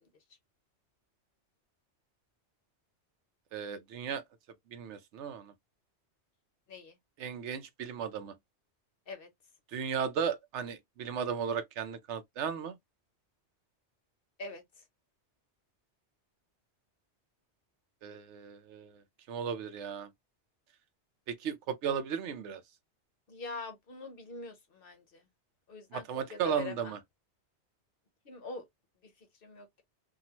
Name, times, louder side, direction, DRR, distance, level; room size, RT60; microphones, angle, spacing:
voice 1, 3.5-4.2 4.7-5.5 7.2-8.3 9.7-12.7 18.0-18.9 19.3-20.1 21.3-22.6 25.9-27.0, right 7 dB, 85° right, 0.9 m, -35 dB
voice 2, 23.3-25.2 25.7-26.9 28.2-28.6 29.0-29.1 29.4-29.8, left 3 dB, 55° left, 1.0 m, -43 dB
2.8 x 2.4 x 2.8 m
omnidirectional pair, 1.2 m